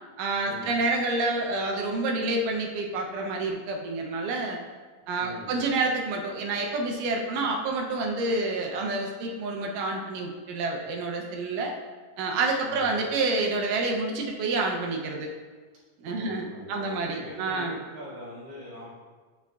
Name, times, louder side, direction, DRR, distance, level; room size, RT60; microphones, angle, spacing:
voice 1, 0.2-4.6 5.1-11.7 12.2-15.3 16.0-17.7, right 3 dB, 85° right, 1 dB, 2.3 m, -28 dB
voice 2, 5.2-5.6 12.6-12.9 16.0-18.9, equal, 15° right, -11 dB, 1.3 m, -42 dB
8.2 x 5.7 x 2.3 m, 1.4 s
omnidirectional pair, 3.7 m